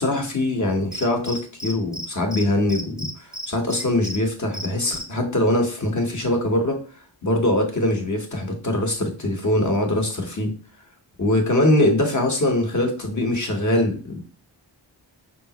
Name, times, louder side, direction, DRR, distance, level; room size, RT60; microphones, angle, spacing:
voice 1, 0.0-6.8 7.2-10.5 11.2-14.2, left 1 dB, 40° left, 2 dB, 1.3 m, -22 dB
Cricket, 0.9-2.1 2.3-2.4 2.7-4.2 4.5-5.0, equal, ahead, 0.7 m, -32 dB
5.0 x 3.4 x 3.0 m, 0.38 s
wide cardioid pair, 85°, 44 cm